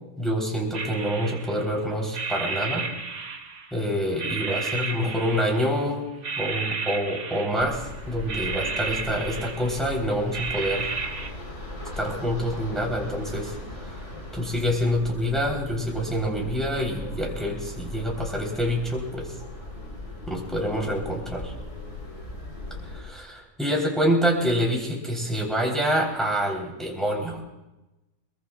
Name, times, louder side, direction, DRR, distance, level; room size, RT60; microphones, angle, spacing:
voice 1, 0.2-2.9 3.7-10.9 11.9-13.5 14.3-19.3 20.3-21.5 22.9-27.4, equal, ahead, -2 dB, 3.2 m, -26 dB
sound 1, 0.7-1.8 2.1-3.8 4.2-5.9 6.2-7.9 8.3-9.9 10.3-11.3, right 4 dB, 55° right, 1.5 m, -32 dB
sound 2, 7.6-23.0, left 1 dB, 50° left, 3.9 m, -38 dB
23.5 x 22.0 x 2.3 m, 1.0 s
omnidirectional pair, 1.5 m